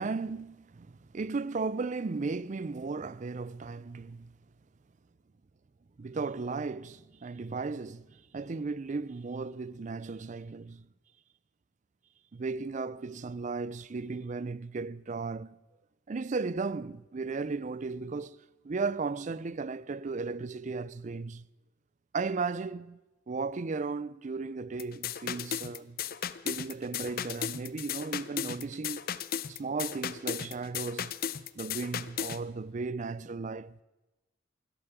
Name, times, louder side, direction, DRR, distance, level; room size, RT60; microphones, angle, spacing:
voice 1, 0.0-4.3 6.0-10.9 12.3-15.6 16.1-18.4 18.6-21.5 22.1-23.0 23.3-26.0 26.4-29.1 29.5-31.1 31.6-33.8, right 4 dB, 40° right, 0.4 m, -35 dB
sound 1, 24.8-32.4, left 8 dB, 50° left, 0.6 m, -36 dB
17.0 x 12.5 x 6.8 m
head